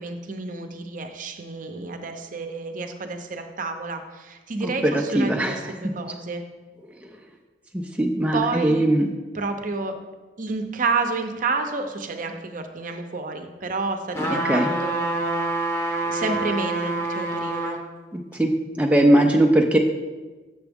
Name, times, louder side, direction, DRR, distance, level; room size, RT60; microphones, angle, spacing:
voice 1, 0.0-6.4 8.3-8.9 9.3-10.0 10.4-15.5 16.0-17.8, right 3 dB, 50° right, 6 dB, 0.6 m, -30 dB
voice 2, 4.8-5.5 8.0-9.1 14.2-14.7 18.4-18.5 18.8-19.8, right 1 dB, 10° right, 1 dB, 0.4 m, -19 dB
sound 1, 14.1-17.8 18.3-18.4, right 2 dB, 15° left, 0.8 m, -27 dB
6.9 x 6.8 x 3.5 m, 1.3 s
head